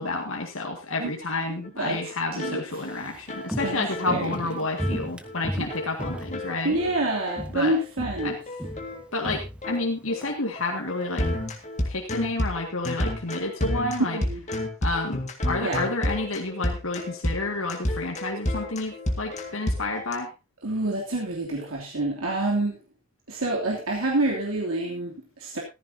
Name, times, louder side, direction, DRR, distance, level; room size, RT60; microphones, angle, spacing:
voice 1, 0.0-6.8 7.5-7.8 8.2-8.3 9.1-11.3 11.9-14.2 14.8-20.3, left 2 dB, 75° left, 1 dB, 2.0 m, -30 dB
voice 2, 1.5-2.0 2.3-2.6 3.6-4.3 6.6-8.3 14.1-14.4 15.6-15.8 20.6-22.8 23.3-25.6, right 2 dB, 90° right, -1 dB, 2.9 m, -27 dB
sound 1, 1.6-1.7 1.9-2.1 2.4-2.5 2.8-3.0 3.3-5.0 5.2-5.4 5.7-7.0 7.3-7.4 7.7-7.9 8.2-20.1, left 1 dB, 35° left, 1.9 m, -31 dB
Walk footsteps, 2.7-7.0 7.3-7.7 8.0-10.3 10.6-10.7, equal, 5° right, 1.1 m, -35 dB
15.0 x 14.5 x 2.8 m, 0.27 s
head